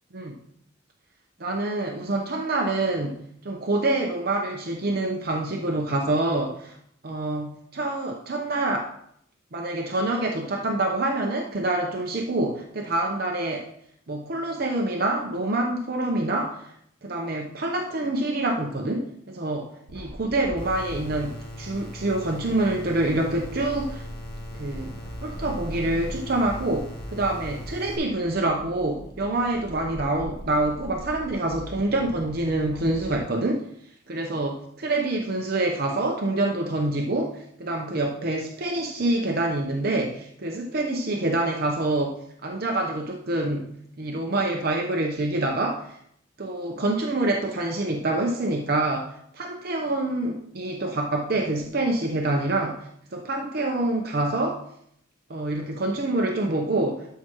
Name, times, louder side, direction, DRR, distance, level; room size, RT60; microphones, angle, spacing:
voice 1, 1.4-6.8 7.0-8.9 9.5-13.6 14.1-16.7 17.0-24.0 24.5-24.9 25.2-33.7 34.1-43.7 44.0-46.0 46.4-52.8 53.1-54.6 55.3-57.1, right 2 dB, 45° right, 1 dB, 0.7 m, -26 dB
sound 1, 19.9-33.1, equal, 65° left, 2.1 m, -40 dB
sound 2, 20.6-28.0, left 1 dB, 25° left, 1.2 m, -41 dB
12.5 x 5.7 x 3.0 m, 0.71 s
head